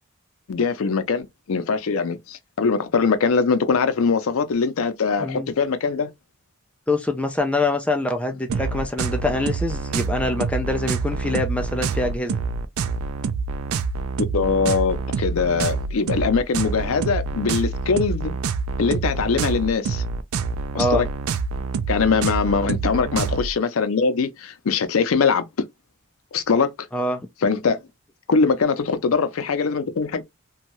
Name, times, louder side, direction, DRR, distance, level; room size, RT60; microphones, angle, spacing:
voice 1, 0.5-6.1 14.3-18.3 18.8-20.0 20.7-21.1 21.9-25.5 26.3-26.7 27.4-27.8 28.3-30.2, left 5 dB, 80° left, 0.5 m, -22 dB
voice 2, 6.9-12.4 20.8-21.0 26.9-27.3, left 2 dB, 5° left, 0.3 m, -24 dB
sound 1, 8.5-23.5, right 4 dB, 85° right, 0.4 m, -26 dB
2.6 x 2.3 x 2.9 m
head